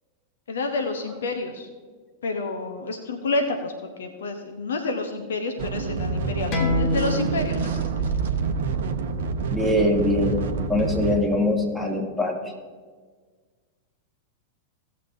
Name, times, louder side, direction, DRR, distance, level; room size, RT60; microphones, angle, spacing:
voice 1, 0.5-1.7 2.2-3.7 4.0-8.0, left 3 dB, 65° left, 5 dB, 0.9 m, -29 dB
sound 1, 5.6-11.2, right 4 dB, 60° right, 0.8 m, -28 dB
sound 2, 6.5-11.7, equal, 35° left, 1.4 m, -30 dB
voice 2, 9.5-10.4 10.7-12.5, left 1 dB, 5° left, -2 dB, 2.2 m, -23 dB
17.0 x 7.5 x 2.7 m, 1.5 s
figure-of-eight pair, 90°, 0 cm